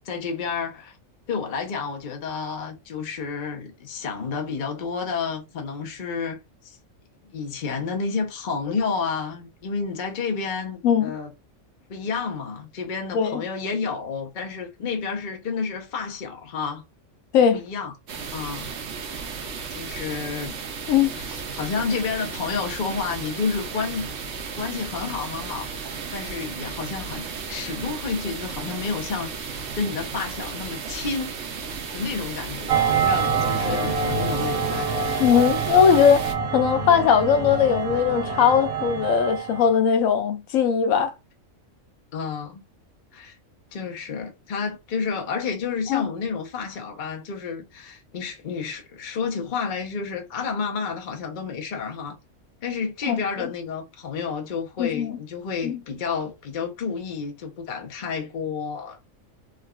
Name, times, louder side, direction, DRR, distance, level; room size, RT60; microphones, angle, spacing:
voice 1, 0.0-1.0 1.3-6.4 6.6-6.8 7.3-11.3 11.9-16.8 17.5-17.9 18.3-18.7 19.4-20.5 21.1-24.1 24.5-31.4 31.9-35.3 42.1-42.6 43.1-43.3 43.7-52.2 52.6-59.0, left 5 dB, 45° left, 0.7 m, -30 dB
sound 1, 18.1-36.3, right 5 dB, 70° right, 0.9 m, -34 dB
sound 2, 32.7-39.7, right 5 dB, 85° right, 1.1 m, -26 dB
voice 2, 35.2-36.3 36.5-41.1 45.9-46.0 53.1-53.2 54.8-55.2 55.6-55.8, left 7 dB, 80° left, 1.0 m, -19 dB
3.5 x 2.3 x 2.2 m
omnidirectional pair, 1.4 m